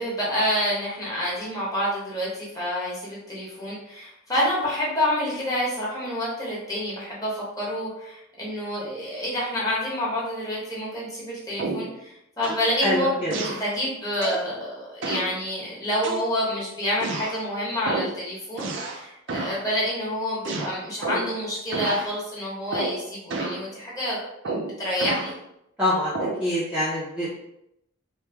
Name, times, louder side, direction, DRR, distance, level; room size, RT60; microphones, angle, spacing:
voice 1, 0.0-24.2 24.4-25.3, equal, 15° left, -6 dB, 1.0 m, -28 dB
sound 1, 11.6-12.0 12.4-12.7 13.3-13.7 14.2-14.5 15.0-15.4 16.0-16.6 17.0-17.4 17.9-18.2 18.6-19.0 19.3-19.6 20.4-21.4 21.7-22.1 22.7-23.0 23.3-23.6 24.4-25.3 26.1-26.5, right 3 dB, 60° right, 0.4 m, -30 dB
voice 2, 12.8-13.3 25.8-26.1 26.4-27.3, left 1 dB, 5° right, -10 dB, 0.6 m, -24 dB
3.1 x 2.1 x 3.4 m, 0.81 s
head